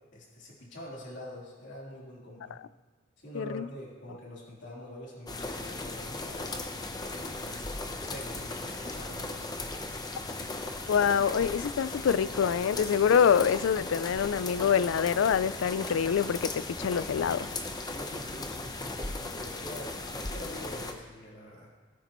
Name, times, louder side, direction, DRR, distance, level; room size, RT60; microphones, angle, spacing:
voice 1, 0.1-2.6 3.2-6.6 7.4-9.7 17.8-21.7, equal, 60° left, -5 dB, 3.5 m, -45 dB
voice 2, 3.4-3.7 10.9-17.5, left 7 dB, 80° left, 18 dB, 0.3 m, -26 dB
sound 1, 5.3-20.9, left 2 dB, 20° left, 0.7 m, -37 dB
18.5 x 9.4 x 3.1 m, 1.4 s
head